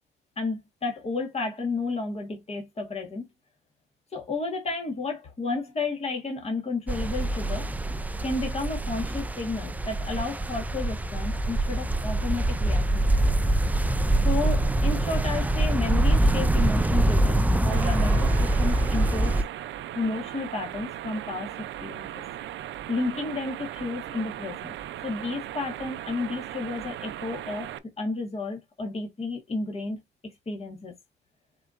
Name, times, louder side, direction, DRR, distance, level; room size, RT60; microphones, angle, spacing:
voice 1, 0.4-3.3 4.1-7.7 8.2-13.2 14.2-19.4 19.9-22.2 22.9-24.7 25.0-27.7 28.0-30.9, left 3 dB, 30° left, 1.4 m, -32 dB
sound 1, 6.9-19.4, right 1 dB, 10° right, 0.3 m, -24 dB
sound 2, 17.7-27.8, right 12 dB, 70° right, 0.5 m, -38 dB
4.2 x 4.1 x 2.5 m
cardioid pair, 90°, 20 cm